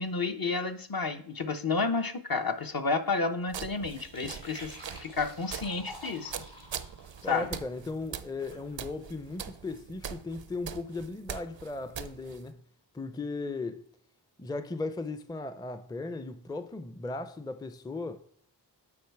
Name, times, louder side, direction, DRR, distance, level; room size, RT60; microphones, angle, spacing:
voice 1, 0.0-6.4 7.3-7.5, left 4 dB, 55° left, 0.8 m, -31 dB
sound 1, 2.4-9.5, left 1 dB, 85° left, 2.8 m, -50 dB
sound 2, 3.5-12.5, right 8 dB, 85° right, 0.6 m, -43 dB
voice 2, 7.2-12.6 12.9-13.8 14.4-18.2, left 3 dB, 10° left, 0.4 m, -37 dB
8.7 x 4.1 x 4.6 m
wide cardioid pair, 55°, 43 cm